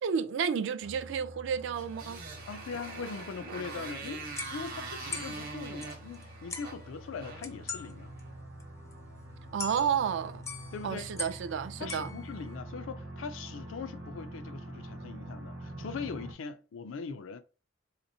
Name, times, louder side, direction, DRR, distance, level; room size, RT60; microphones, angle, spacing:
voice 1, 0.0-2.2 9.5-10.4 10.8-12.1, right 7 dB, 65° right, 0.3 m, -31 dB
sound 1, 0.8-16.3, right 1 dB, 80° right, 0.7 m, -46 dB
Motorcycle, 1.7-8.2, right 3 dB, 50° right, 0.8 m, -43 dB
voice 2, 2.5-8.1 10.7-11.1 11.8-17.4, left 5 dB, 75° left, 0.4 m, -41 dB
sound 2, 3.7-3.9 4.4-6.2 6.5-6.9 7.4-7.9 8.2-8.3 8.6-8.7 8.9-9.0 9.6-10.2 10.4-11.5 11.8-12.5, left 4 dB, 15° left, 0.4 m, -42 dB
3.3 x 2.9 x 2.6 m
head